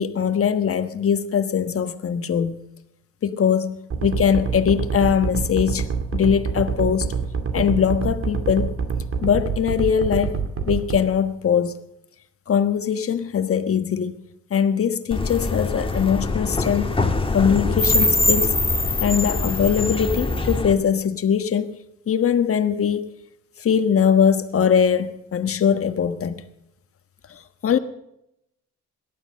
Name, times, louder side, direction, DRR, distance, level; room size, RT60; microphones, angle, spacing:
voice 1, 0.0-2.6 3.2-7.1 7.5-8.7 9.2-10.4 10.7-11.8 12.5-14.2 14.5-17.0 17.3-18.5 19.0-21.8 22.1-23.1 23.6-26.4 27.6-27.8, left 7 dB, 50° left, 1.4 m, -21 dB
sound 1, 3.9-11.0, right 5 dB, 45° right, 2.3 m, -25 dB
sound 2, 15.1-20.7, left 2 dB, 15° left, 1.7 m, -23 dB
18.0 x 12.0 x 6.5 m
cardioid pair, 90°, 30 cm